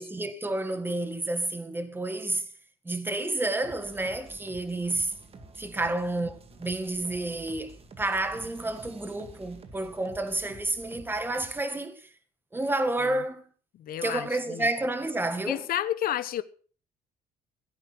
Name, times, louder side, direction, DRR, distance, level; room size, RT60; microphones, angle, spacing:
voice 1, 0.0-2.5 2.9-5.1 5.6-7.7 8.0-12.0 12.5-13.4 14.0-15.6, right 2 dB, 10° right, 1.9 m, -30 dB
sound 1, 3.6-11.6, right 3 dB, 35° right, 2.0 m, -49 dB
voice 2, 13.8-14.7 15.5-16.4, left 11 dB, 60° left, 1.0 m, -31 dB
16.5 x 8.8 x 6.1 m
cardioid pair, 110°, 17 cm